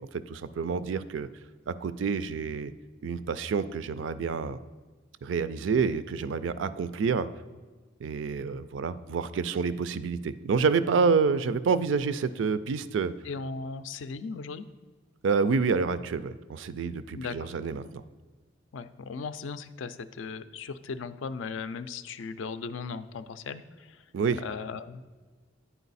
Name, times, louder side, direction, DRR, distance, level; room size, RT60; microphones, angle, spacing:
voice 1, 0.1-1.3 1.7-2.7 3.0-4.6 5.2-7.3 8.0-13.1 15.2-18.0 24.1-24.4, right 5 dB, 70° right, 14 dB, 0.4 m, -28 dB
voice 2, 13.2-14.6 17.1-17.5 18.7-24.0 24.4-25.0, left 5 dB, 75° left, 12 dB, 0.4 m, -37 dB
10.0 x 4.6 x 4.1 m, 1.4 s
head